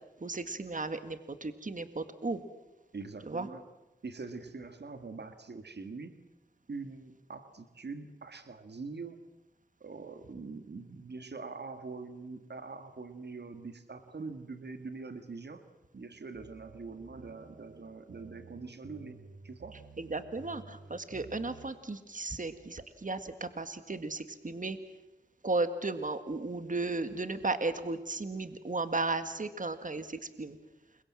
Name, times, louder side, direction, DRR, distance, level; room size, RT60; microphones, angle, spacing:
voice 1, 0.2-2.4 3.3-3.5 20.0-24.8 25.4-30.6, right 3 dB, 45° right, 10 dB, 1.9 m, -35 dB
voice 2, 2.9-3.7 4.0-6.1 6.7-9.2 9.8-15.7 15.9-19.2 19.4-19.8, right 4 dB, 70° right, 8 dB, 2.0 m, -43 dB
sound 1, 16.3-21.7, right 4 dB, 85° right, 1.8 m, -53 dB
29.0 x 23.5 x 7.5 m, 1.0 s
cardioid pair, 40°, 18 cm